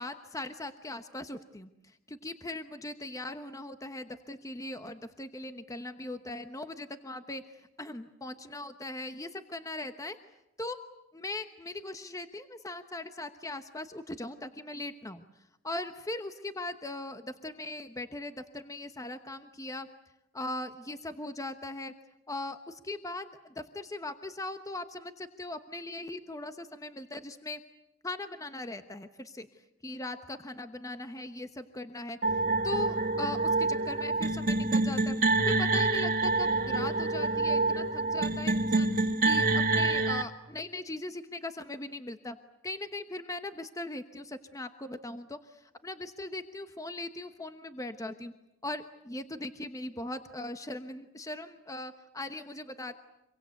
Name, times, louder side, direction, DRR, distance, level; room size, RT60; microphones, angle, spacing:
voice 1, 0.0-1.7 2.1-7.4 7.8-10.2 10.6-10.8 11.1-15.2 15.6-19.9 20.3-21.9 22.3-27.6 28.0-29.5 29.8-32.2 32.6-35.2 35.5-38.9 39.2-42.4 42.6-48.3 48.6-53.0, left 2 dB, 15° left, 8 dB, 1.1 m, -39 dB
sound 1, 32.2-40.2, right 2 dB, 45° right, 2.0 m, -27 dB
26.0 x 23.5 x 8.3 m, 0.91 s
head